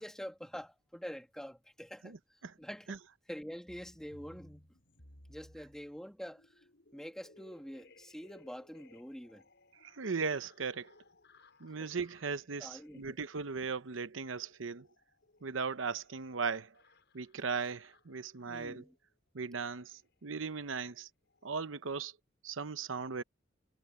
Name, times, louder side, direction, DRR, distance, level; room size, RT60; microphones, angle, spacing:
voice 1, 0.0-2.1 2.6-3.0 3.3-4.7 5.3-6.4 6.9-9.4 11.8-11.9 12.6-13.2 18.5-18.9, equal, 5° left, 2.4 m, -46 dB
sound 1, 3.7-19.0 19.8-20.0 20.3-20.5 20.8-21.0 21.3-21.5, left 2 dB, 65° left, 6.4 m, -63 dB
voice 2, 9.8-10.9 11.6-14.9 15.4-16.7 17.1-18.8 19.3-21.1 21.4-22.1 22.4-23.2, right 5 dB, 85° right, 0.8 m, -37 dB
head